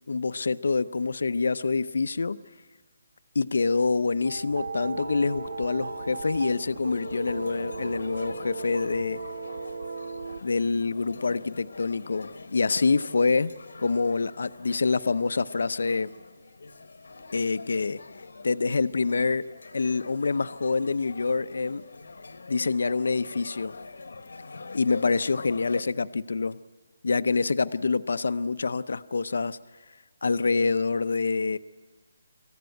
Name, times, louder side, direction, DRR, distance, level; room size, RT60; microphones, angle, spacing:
voice 1, 0.1-2.4 3.3-9.2 10.4-13.5 13.8-16.1 17.3-18.0 18.4-19.5 19.7-21.8 22.5-23.8 24.7-26.6 27.0-29.6 30.2-31.6, left 4 dB, 60° left, 14 dB, 0.6 m, -26 dB
sound 1, 4.2-10.4, right 3 dB, 75° right, 1.5 m, -36 dB
sound 2, 6.1-25.8, left 3 dB, 90° left, 1.2 m, -45 dB
27.0 x 15.0 x 9.3 m, 1.4 s
hypercardioid pair, 180°, 0 cm